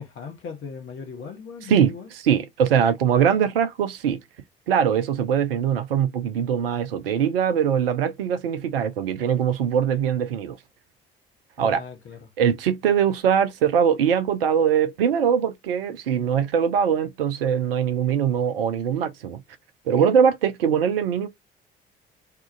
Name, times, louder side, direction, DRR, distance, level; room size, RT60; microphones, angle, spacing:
voice 1, 0.0-2.1 11.6-12.3, left 5 dB, 45° left, 1.2 m, -38 dB
voice 2, 2.2-4.2 4.7-10.6 11.6-11.8 12.4-19.4 19.9-21.3, right 8 dB, 75° right, 0.6 m, -22 dB
2.8 x 2.4 x 3.7 m
figure-of-eight pair, 50°, 29 cm